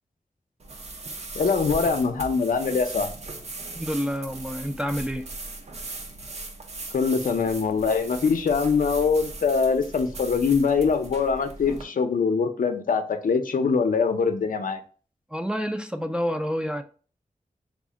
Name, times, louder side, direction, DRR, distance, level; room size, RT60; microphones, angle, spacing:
sound 1, 0.6-11.8, right 2 dB, 50° right, 0.6 m, -38 dB
voice 1, 1.4-3.1 6.9-14.8, left 5 dB, 75° left, 0.5 m, -23 dB
voice 2, 3.7-5.2 15.3-16.8, equal, 5° right, 0.3 m, -28 dB
3.6 x 2.1 x 3.6 m
wide cardioid pair, 100°, 14 cm